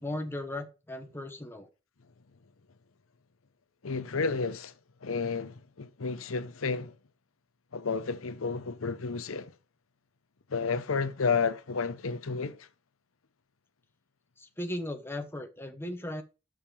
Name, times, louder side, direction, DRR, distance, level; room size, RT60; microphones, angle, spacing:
voice 1, 0.0-1.7 14.4-16.2, left 1 dB, 10° left, 1.0 m, -37 dB
voice 2, 3.8-4.7 5.0-6.9 7.7-9.5 10.5-12.7, left 5 dB, 90° left, 0.8 m, -31 dB
6.6 x 5.7 x 6.9 m
head